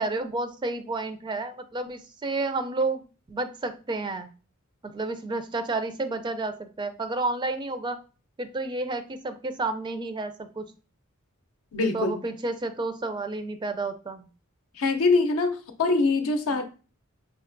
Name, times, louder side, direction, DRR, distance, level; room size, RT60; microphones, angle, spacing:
voice 1, 0.0-3.0 3.3-4.3 4.8-8.0 8.4-10.7 11.9-14.3 16.5-16.6, right 3 dB, 20° right, 0.4 m, -30 dB
voice 2, 11.7-12.2 14.8-16.6, left 3 dB, 75° left, 0.6 m, -23 dB
5.2 x 2.3 x 2.5 m
head